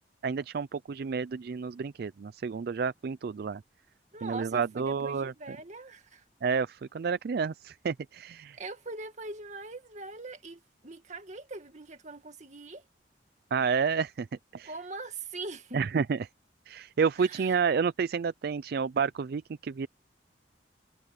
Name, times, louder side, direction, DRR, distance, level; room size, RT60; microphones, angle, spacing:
voice 1, 0.2-3.6 4.2-5.3 6.4-8.6 13.5-14.3 14.5-14.7 15.7-16.2 16.7-19.9, right 5 dB, 60° right, 0.4 m, -30 dB
voice 2, 4.1-6.2 8.6-12.8 14.6-15.8 17.2-17.5, right 3 dB, 40° right, 2.1 m, -42 dB
head